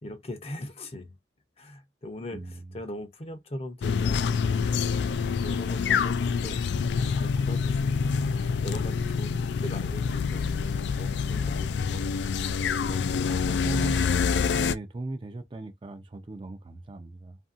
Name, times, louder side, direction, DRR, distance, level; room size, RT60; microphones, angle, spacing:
voice 1, 0.0-1.2 1.6-6.6 7.1-12.0 12.7-13.9, left 1 dB, 35° left, 0.6 m, -41 dB
voice 2, 2.3-2.8 13.3-14.0 14.4-17.4, right 2 dB, 30° right, 0.4 m, -37 dB
sound 1, 3.8-14.7, left 6 dB, 75° left, 0.3 m, -26 dB
2.8 x 2.6 x 2.4 m
head